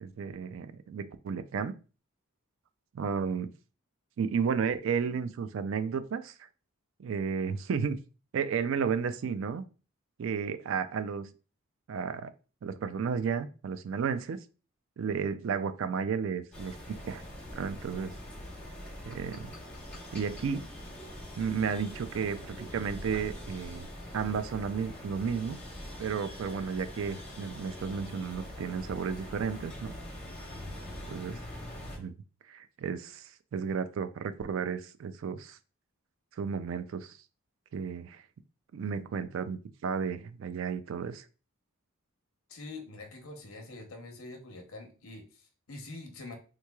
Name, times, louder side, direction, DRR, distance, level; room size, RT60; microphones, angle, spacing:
voice 1, 0.0-1.7 2.9-3.5 4.2-6.3 7.0-8.0 8.3-9.6 10.2-11.3 11.9-12.3 12.6-14.4 15.0-17.2 17.5-18.1 19.0-19.5 20.1-20.7 21.4-23.9 24.1-25.6 26.0-29.9 31.1-31.4 32.0-32.1 32.5-35.6 36.4-37.2 37.7-38.2 38.7-41.2, right 6 dB, 65° right, 11 dB, 0.3 m, -33 dB
sound 1, 16.5-32.0, left 1 dB, 5° left, 1.1 m, -43 dB
voice 2, 42.5-46.3, left 2 dB, 75° left, 4 dB, 0.8 m, -45 dB
3.6 x 3.0 x 2.3 m, 0.35 s
head